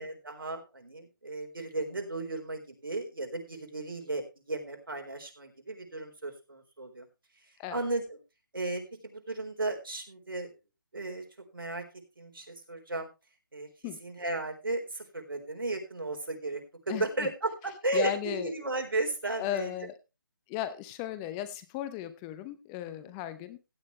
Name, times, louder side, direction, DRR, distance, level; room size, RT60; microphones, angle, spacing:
voice 1, 0.0-7.1 7.7-8.2 8.5-10.5 10.9-11.2 11.5-11.8 12.2-13.1 13.5-13.7 14.0-19.7 22.9-23.1, right 2 dB, 90° right, 4 dB, 4.1 m, -35 dB
voice 2, 16.9-17.3 17.9-18.5 19.4-20.0 20.5-23.6, left 11 dB, 15° left, 13 dB, 0.7 m, -36 dB
16.0 x 9.4 x 3.2 m, 0.26 s
figure-of-eight pair, 155°, 11 cm